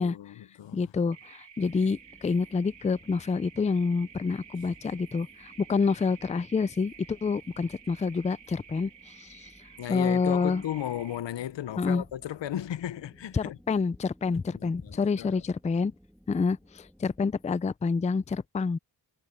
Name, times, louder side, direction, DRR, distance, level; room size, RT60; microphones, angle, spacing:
voice 1, 0.0-0.9 9.8-13.6 14.3-15.4, left 11 dB, 85° left, 0.6 m, -35 dB
voice 2, 0.7-9.5 9.9-10.6 11.8-12.0 13.3-15.9 16.3-18.8, left 4 dB, 20° left, 0.3 m, -28 dB
sound 1, 1.1-11.2, right 7 dB, 90° right, 1.6 m, -52 dB
sound 2, 1.6-17.5, equal, ahead, 2.0 m, -59 dB
wide cardioid pair, 135°, 42 cm